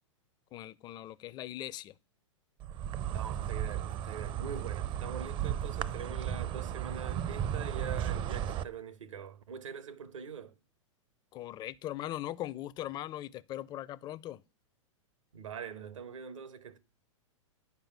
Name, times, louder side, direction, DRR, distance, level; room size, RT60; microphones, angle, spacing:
voice 1, 0.5-1.9 11.3-14.4, left 13 dB, 25° left, 0.4 m, -40 dB
Insect, 2.6-8.6, right 10 dB, 30° right, 0.5 m, -35 dB
voice 2, 3.1-10.5 15.3-16.8, right 6 dB, 75° right, 1.1 m, -43 dB
9.5 x 5.0 x 6.1 m
hypercardioid pair, 105°, 16 cm